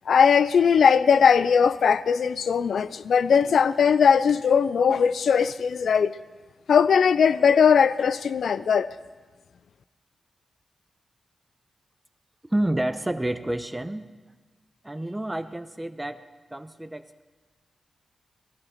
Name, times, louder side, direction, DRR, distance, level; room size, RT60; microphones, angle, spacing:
voice 1, 0.1-6.2 6.7-8.9, left 6 dB, 80° left, 0.3 m, -19 dB
voice 2, 12.5-14.1 14.8-17.2, right 1 dB, 15° right, 0.7 m, -29 dB
18.5 x 12.0 x 4.3 m
cardioid pair, 60°, 0 cm